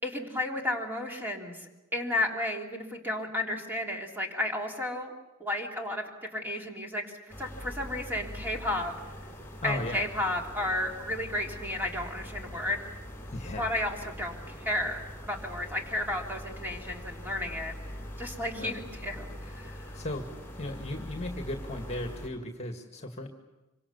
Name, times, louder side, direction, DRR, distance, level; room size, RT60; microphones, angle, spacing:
voice 1, 0.0-5.1 5.4-7.1 7.4-8.9 9.6-12.8 13.6-15.0 15.3-17.7 18.2-19.9, left 1 dB, 10° right, 0 dB, 3.4 m, -33 dB
sound 1, 7.3-22.3, equal, 10° left, 4.8 m, -43 dB
voice 2, 9.6-10.1 13.3-13.7 18.5-18.8 19.9-20.3 20.6-23.3, left 1 dB, 30° left, 4 dB, 2.0 m, -36 dB
26.0 x 25.0 x 7.0 m, 1.0 s
head